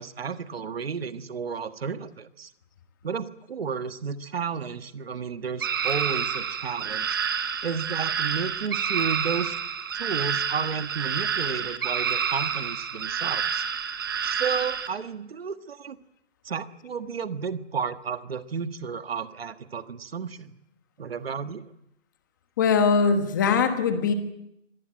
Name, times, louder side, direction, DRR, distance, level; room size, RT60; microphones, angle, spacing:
voice 1, 0.0-2.5 3.0-7.2 7.6-9.5 10.0-13.6 14.2-16.0 16.4-20.5 21.0-21.6, right 6 dB, 50° right, 10 dB, 1.6 m, -32 dB
sound 1, 5.6-14.9, right 7 dB, 20° right, 1.0 m, -28 dB
voice 2, 22.6-24.1, left 5 dB, 15° left, 8 dB, 1.3 m, -21 dB
24.5 x 18.5 x 9.1 m, 0.82 s
hypercardioid pair, 175°, 37 cm